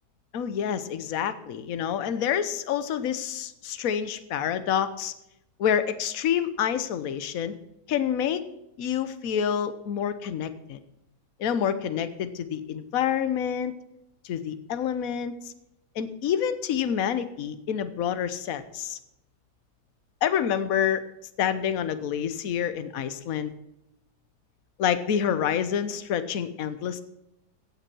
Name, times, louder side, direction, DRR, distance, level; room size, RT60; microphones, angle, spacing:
voice 1, 0.3-5.1 5.6-7.5 7.9-8.4 8.8-10.8 11.4-13.7 14.2-15.5 15.9-19.0 20.2-21.0 21.4-23.5 24.8-27.0, left 8 dB, 60° left, 12 dB, 1.3 m, -27 dB
16.5 x 7.2 x 6.2 m, 0.84 s
omnidirectional pair, 1.8 m